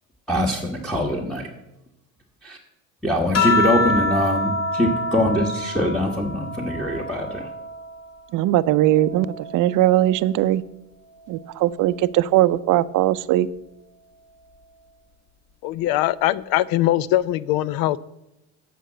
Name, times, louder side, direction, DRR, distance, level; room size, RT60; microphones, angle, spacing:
voice 1, 0.3-1.5 2.4-2.6 3.0-7.5, equal, ahead, -3 dB, 1.3 m, -23 dB
sound 1, 3.3-8.1 8.6-10.3 11.5-12.0, left 3 dB, 40° left, 1.9 m, -27 dB
voice 2, 8.3-10.6 11.3-13.5, right 14 dB, 55° right, 16 dB, 0.5 m, -19 dB
voice 3, 15.6-18.0, left 14 dB, 60° left, 19 dB, 0.5 m, -21 dB
8.2 x 5.2 x 7.5 m, 0.91 s
hypercardioid pair, 75°, 39 cm